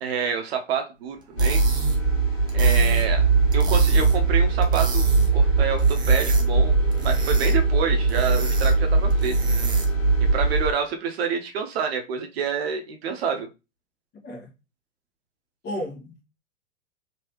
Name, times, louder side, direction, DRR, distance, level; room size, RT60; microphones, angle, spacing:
voice 1, 0.0-1.6 2.5-3.2 3.5-9.4 10.3-13.5, right 6 dB, 50° right, 0.8 m, -28 dB
sound 1, 1.2-10.1, right 4 dB, 10° right, 0.5 m, -36 dB
sound 2, 1.4-10.7, right 3 dB, 85° left, 1.0 m, -20 dB
voice 2, 15.6-16.2, equal, 25° left, 1.2 m, -33 dB
3.1 x 2.9 x 3.0 m
figure-of-eight pair, 100°, 38 cm